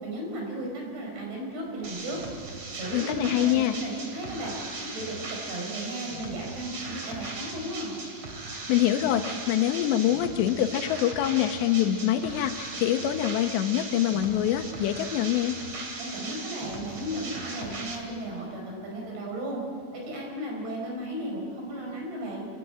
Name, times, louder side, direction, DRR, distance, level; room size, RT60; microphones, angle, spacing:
voice 1, 0.0-2.2 2.7-4.6 4.9-8.0 16.0-19.6 19.9-22.5, right 1 dB, 60° right, 0 dB, 6.8 m, -35 dB
sound 1, 1.8-18.0, right 3 dB, 40° right, 3.1 m, -38 dB
voice 2, 2.9-3.8 8.5-15.6, left 12 dB, 80° left, 7 dB, 2.9 m, -25 dB
27.0 x 16.0 x 9.0 m, 2.6 s
omnidirectional pair, 5.3 m